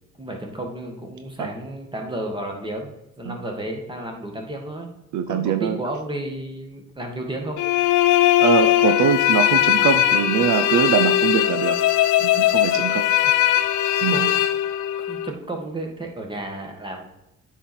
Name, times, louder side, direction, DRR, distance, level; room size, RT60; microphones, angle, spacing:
voice 1, 0.2-4.9 5.3-7.6 14.1-14.2 15.0-17.1, right 1 dB, 15° right, 2 dB, 1.9 m, -32 dB
voice 2, 5.1-5.8 8.4-11.8 12.2-13.0 14.0-14.3, right 8 dB, 75° right, 8 dB, 0.7 m, -22 dB
sound 1, 7.6-15.3, left 13 dB, 80° left, 0.6 m, -19 dB
8.9 x 4.6 x 4.4 m, 0.86 s
cardioid pair, 90°, 30 cm